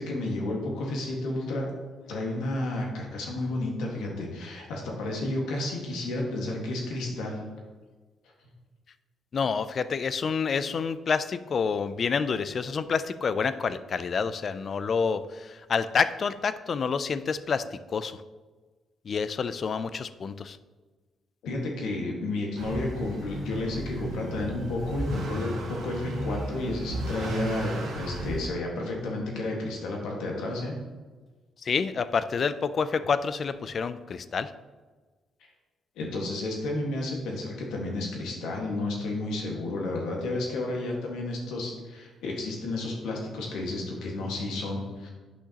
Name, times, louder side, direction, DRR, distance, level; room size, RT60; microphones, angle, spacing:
voice 1, 0.0-1.6 2.1-7.4 21.4-30.7 35.9-45.1, left 2 dB, 85° left, -1 dB, 1.6 m, -31 dB
voice 2, 9.3-18.2 19.1-20.6 31.6-34.5, left 5 dB, 50° left, 14 dB, 0.3 m, -28 dB
Motor vehicle (road) / Accelerating revving vroom, 22.6-28.5, right 1 dB, 85° right, 1.5 m, -34 dB
8.2 x 5.8 x 2.9 m, 1.3 s
cardioid pair, 90°, 0 cm